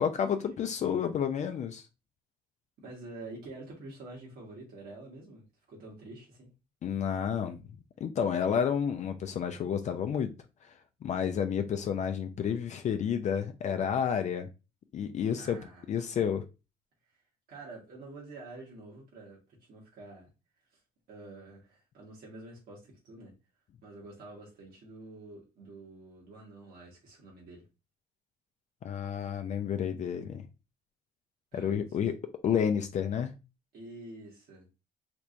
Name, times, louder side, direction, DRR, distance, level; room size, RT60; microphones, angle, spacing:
voice 1, 0.0-1.9 6.8-7.6 8.0-10.3 10.6-10.7 11.0-14.5 14.9-15.6 15.9-16.4 28.8-30.4 31.5-32.2 32.4-33.3, left 8 dB, 45° left, 0.4 m, -30 dB
voice 2, 2.8-6.5 15.3-15.9 17.1-17.2 17.5-20.3 20.7-20.8 21.1-23.3 23.8-27.7 31.5-32.0 33.7-34.7, right 2 dB, 60° right, 1.5 m, -48 dB
3.4 x 3.1 x 2.6 m
cardioid pair, 110°, 17 cm